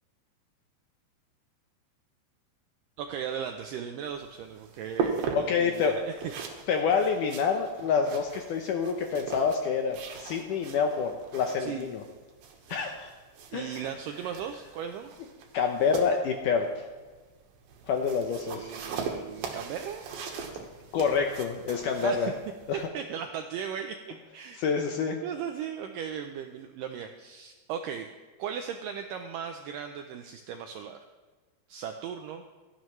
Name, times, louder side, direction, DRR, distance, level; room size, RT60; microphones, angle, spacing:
voice 1, 3.0-6.1 11.6-11.9 13.5-15.1 18.5-20.0 22.0-22.3 22.7-24.0 24.3-24.6 25.2-28.1 28.4-31.0 31.7-32.4, right 8 dB, 85° right, 5 dB, 1.9 m, -37 dB
sound 1, 4.0-22.9, right 5 dB, 70° right, 2.9 m, -40 dB
voice 2, 5.3-5.9 6.7-12.0 12.7-13.1 13.5-13.9 15.5-16.8 17.9-18.7 20.9-22.3 22.7-22.8 24.6-25.2, left 6 dB, 80° left, 3 dB, 1.9 m, -27 dB
17.0 x 13.0 x 3.2 m, 1.3 s
omnidirectional pair, 4.6 m